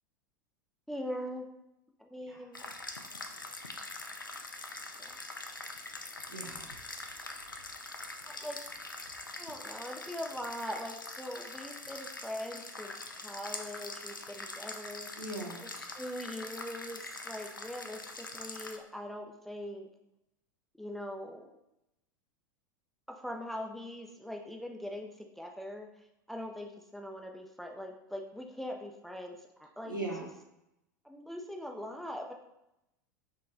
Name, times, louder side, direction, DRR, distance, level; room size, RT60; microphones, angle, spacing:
voice 1, 0.9-1.5 2.0-2.7 5.0-5.1 8.2-8.6 9.4-12.9 13.2-15.1 15.6-19.9 20.8-21.6 23.1-25.9 26.3-29.9 31.0-32.3, equal, ahead, 2 dB, 0.4 m, -41 dB
sound 1, 2.5-18.8, left 2 dB, 90° left, 0.4 m, -43 dB
voice 2, 6.3-6.7 15.2-15.6 29.8-30.2, right 2 dB, 85° right, -3 dB, 1.2 m, -38 dB
4.0 x 3.1 x 3.8 m, 0.88 s
figure-of-eight pair, 85°, 11 cm